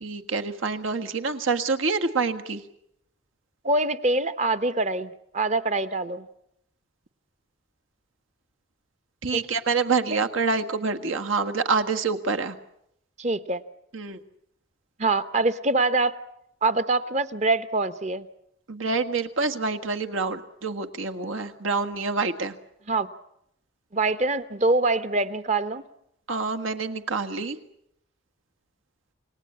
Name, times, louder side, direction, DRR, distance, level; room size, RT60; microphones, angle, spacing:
voice 1, 0.0-2.6 9.2-12.6 13.9-14.2 18.7-22.6 26.3-27.6, right 4 dB, 80° right, 6 dB, 1.7 m, -27 dB
voice 2, 3.6-6.3 9.3-9.4 10.1-10.3 13.2-13.6 15.0-16.1 16.6-18.3 22.9-23.1 23.9-25.8, right 2 dB, 35° right, 13 dB, 0.9 m, -24 dB
29.0 x 18.5 x 8.6 m, 0.78 s
head